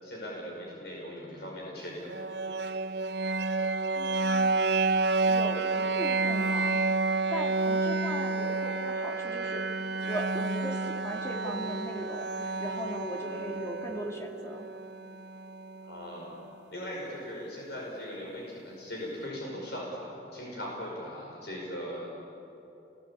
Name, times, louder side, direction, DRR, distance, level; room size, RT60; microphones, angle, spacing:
voice 1, 0.0-2.1 13.2-13.5 15.8-16.3 16.7-22.1, equal, 70° left, -3 dB, 5.4 m, -39 dB
sound 1, 2.1-16.0, right 3 dB, 85° right, 0.8 m, -30 dB
voice 2, 3.9-4.6 5.3-6.8 7.3-9.6 10.0-14.7, equal, 15° left, 0 dB, 2.6 m, -38 dB
30.0 x 21.0 x 8.6 m, 3.0 s
head